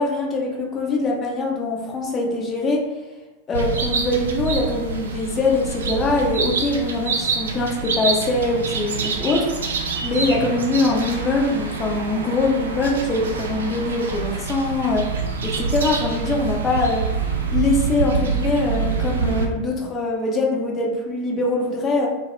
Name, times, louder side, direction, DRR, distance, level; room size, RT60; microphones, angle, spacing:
voice 1, 0.0-2.8 3.5-15.1 15.4-17.1 17.5-22.1, left 2 dB, 25° left, -1 dB, 0.5 m, -23 dB
sound 1, 3.5-19.5, right 5 dB, 65° right, 0.3 m, -26 dB
2.2 x 2.0 x 2.9 m, 1.1 s
figure-of-eight pair, 90°, 0 cm